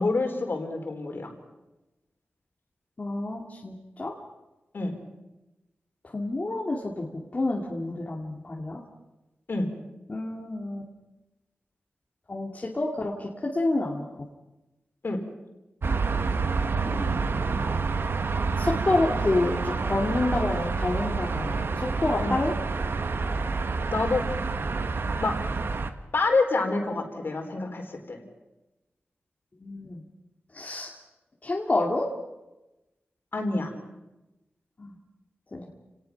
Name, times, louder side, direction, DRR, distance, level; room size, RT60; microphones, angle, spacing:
voice 1, 0.0-1.3 4.7-4.9 9.5-9.7 15.0-15.2 22.2-22.3 23.9-24.2 25.2-25.3 26.1-28.2 33.3-33.7, left 3 dB, 55° left, 4 dB, 4.2 m, -27 dB
voice 2, 3.0-4.1 6.0-8.8 10.1-10.9 12.3-14.1 16.8-17.9 18.6-22.5 29.6-30.0 30.5-30.9 31.4-32.1 34.8-34.9 35.5-35.7, left 2 dB, 35° left, -1 dB, 2.4 m, -29 dB
sound 1, 15.8-25.9, right 4 dB, 65° right, 1.4 m, -28 dB
29.0 x 18.5 x 5.9 m, 1.0 s
wide cardioid pair, 100°, 4 cm